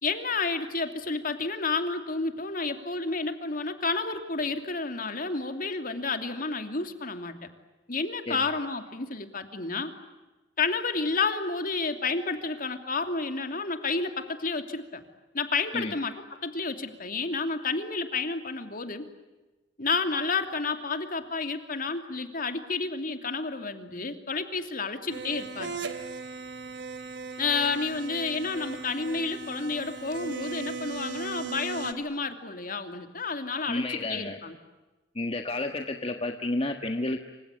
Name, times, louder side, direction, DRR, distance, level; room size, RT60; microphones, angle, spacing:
voice 1, 0.0-7.5 7.9-9.9 10.6-15.0 15.3-19.1 19.8-25.7 27.4-34.6, left 4 dB, 50° left, 7 dB, 2.8 m, -30 dB
sound 1, 25.1-31.9, right 4 dB, 70° right, 2.6 m, -38 dB
voice 2, 33.7-34.4 35.1-37.3, left 2 dB, 30° left, 5 dB, 1.5 m, -31 dB
27.0 x 26.0 x 8.4 m, 1.2 s
head